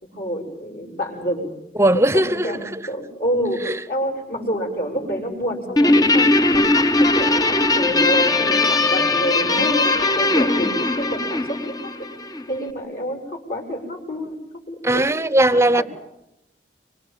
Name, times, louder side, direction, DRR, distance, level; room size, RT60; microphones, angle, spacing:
voice 1, 0.1-1.5 1.9-11.7 12.5-14.4 14.7-15.8, equal, 55° left, 6.6 m, -28 dB
voice 2, 1.8-2.8 3.6-3.8 14.8-15.8, right 1 dB, 15° right, 0.9 m, -18 dB
Guitar, 5.8-12.4, left 2 dB, 20° left, 0.9 m, -19 dB
25.5 x 25.5 x 7.5 m
head